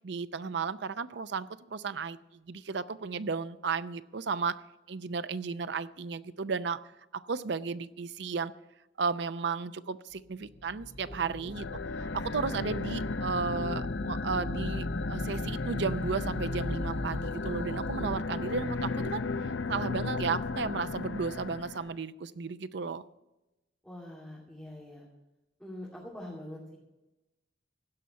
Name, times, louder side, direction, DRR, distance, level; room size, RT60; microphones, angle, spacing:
voice 1, 0.0-2.2 2.5-4.6 4.9-6.8 7.1-8.5 9.0-11.7 12.0-19.2 19.7-23.0, right 5 dB, 60° right, 14 dB, 0.5 m, -34 dB
sound 1, 10.4-18.2, left 1 dB, 30° left, 0.7 m, -39 dB
voice 2, 11.1-11.5 23.8-25.1 25.6-26.8, left 1 dB, 5° left, -6 dB, 2.6 m, -44 dB
sound 2, 11.5-21.9, left 3 dB, 75° left, 0.6 m, -35 dB
16.5 x 5.7 x 9.5 m, 1.0 s
head